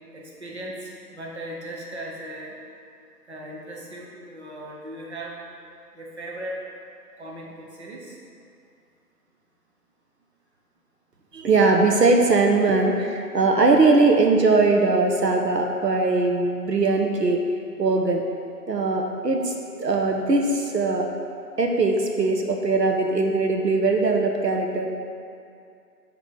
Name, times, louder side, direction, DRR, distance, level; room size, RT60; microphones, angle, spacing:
voice 1, 0.1-2.6 3.3-5.4 5.9-6.6 7.2-8.2, right 1 dB, 45° right, -2 dB, 0.9 m, -37 dB
voice 2, 11.3-17.4 17.8-18.2 18.7-19.5 19.8-21.0 21.6-24.9, right 3 dB, 80° right, 2 dB, 0.8 m, -20 dB
4.9 x 3.9 x 5.7 m, 2.4 s
figure-of-eight pair, 155°, 48 cm